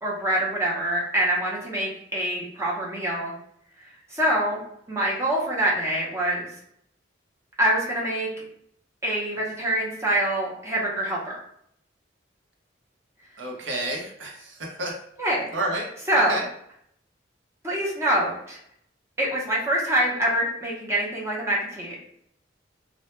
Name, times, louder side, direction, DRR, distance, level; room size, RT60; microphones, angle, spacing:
voice 1, 0.0-3.3 4.1-4.6 4.9-6.5 7.6-8.3 9.0-11.4 15.2-15.5 16.1-16.4 17.6-18.6 19.2-22.0, right 1 dB, 15° right, -5 dB, 0.6 m, -25 dB
voice 2, 13.4-15.0 15.5-15.9 16.1-16.4, right 1 dB, 80° right, -1 dB, 0.7 m, -30 dB
2.1 x 2.0 x 2.9 m, 0.70 s
head